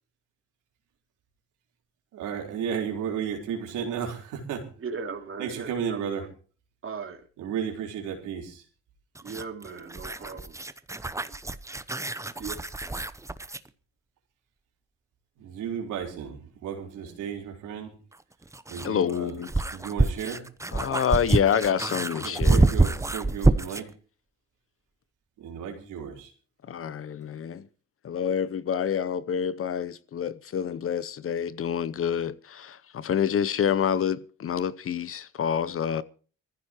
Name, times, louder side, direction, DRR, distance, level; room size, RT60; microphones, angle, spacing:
voice 1, 2.1-4.7 5.4-6.3 7.4-8.6 15.4-18.0 18.7-19.3 19.7-20.4 22.2-23.9 25.4-26.3, right 7 dB, 90° right, 4.0 m, -33 dB
voice 2, 4.8-6.0 6.8-7.2 9.2-10.6 12.4-12.5, right 5 dB, 45° right, 2.8 m, -37 dB
sound 1, 9.1-13.7 16.0-16.1 18.1-23.9, right 2 dB, 10° right, 0.8 m, -26 dB
voice 3, 18.8-19.5 20.7-22.7 26.7-27.7 28.0-36.0, left 8 dB, 45° left, 0.7 m, -27 dB
21.0 x 14.5 x 3.0 m
cardioid pair, 90°, 30 cm